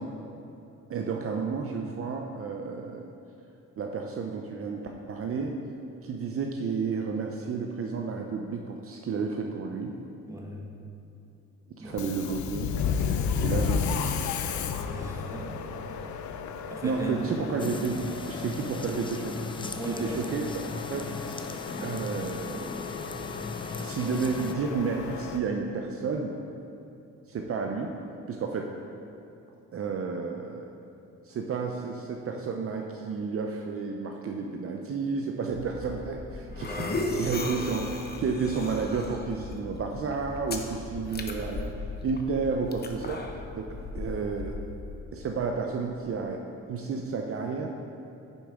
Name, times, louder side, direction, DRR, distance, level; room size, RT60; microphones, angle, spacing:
voice 1, 0.9-3.1 3.8-5.6 6.0-9.9 11.7-12.7 13.4-14.3 16.8-18.0 18.3-21.1 21.8-22.8 23.8-26.4 27.3-27.9 28.3-28.7 29.7-30.7 31.3-44.6 45.1-46.4 46.7-47.7, right 5 dB, 50° right, 2 dB, 0.6 m, -31 dB
voice 2, 10.3-10.6 11.8-12.1 14.8-16.0 16.7-17.3 19.8-20.3 36.5-37.3, equal, 10° right, -1 dB, 1.3 m, -39 dB
Subway metro underground, 11.9-25.4, left 6 dB, 70° left, 0.6 m, -33 dB
sound 1, 17.6-24.5, left 3 dB, 15° left, 0.5 m, -38 dB
sound 2, 35.5-45.0, left 3 dB, 35° left, 0.8 m, -36 dB
9.7 x 6.9 x 3.6 m, 2.8 s
cardioid pair, 90°, 30 cm